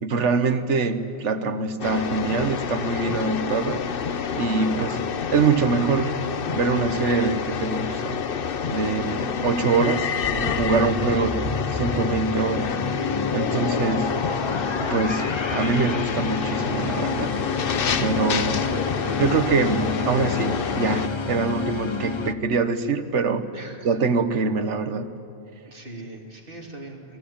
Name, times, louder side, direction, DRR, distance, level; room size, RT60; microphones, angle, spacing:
voice 1, 0.0-3.8 4.3-5.0 5.3-6.1 6.5-8.2 8.7-12.7 13.3-14.1 14.8-17.3 18.0-18.6 19.2-23.5 23.8-25.1, right 4 dB, 90° right, 10 dB, 1.6 m, -24 dB
sound 1, 1.8-21.1, left 6 dB, 55° left, 1.0 m, -28 dB
sound 2, 10.2-22.3, left 4 dB, 30° left, 0.7 m, -30 dB
voice 2, 23.5-23.9 25.7-27.2, right 2 dB, 50° right, 1 dB, 3.2 m, -41 dB
29.5 x 21.0 x 8.7 m, 2.7 s
omnidirectional pair, 1.2 m